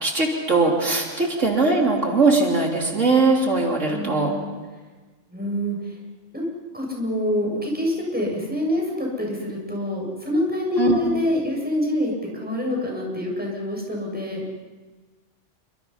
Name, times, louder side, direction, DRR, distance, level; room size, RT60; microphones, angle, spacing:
voice 1, 0.0-4.3 10.8-11.0, right 3 dB, 80° right, 0 dB, 3.6 m, -20 dB
voice 2, 3.9-4.5 5.3-6.0 6.3-6.4 6.7-14.4, left 1 dB, 5° right, -2 dB, 7.3 m, -26 dB
28.5 x 26.0 x 5.8 m, 1.3 s
omnidirectional pair, 1.3 m